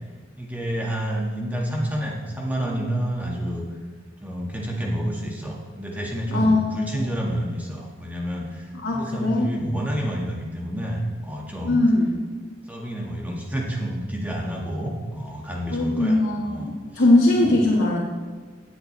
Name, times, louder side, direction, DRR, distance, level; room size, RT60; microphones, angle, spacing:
voice 1, 0.4-3.6 4.2-11.8 12.7-16.2 16.4-17.0 17.3-17.6, equal, 10° right, -2 dB, 1.8 m, -29 dB
voice 2, 6.3-7.0 8.8-9.5 11.6-12.1 15.7-18.0, left 2 dB, 90° left, -4 dB, 1.7 m, -20 dB
17.5 x 8.0 x 3.3 m, 1.4 s
head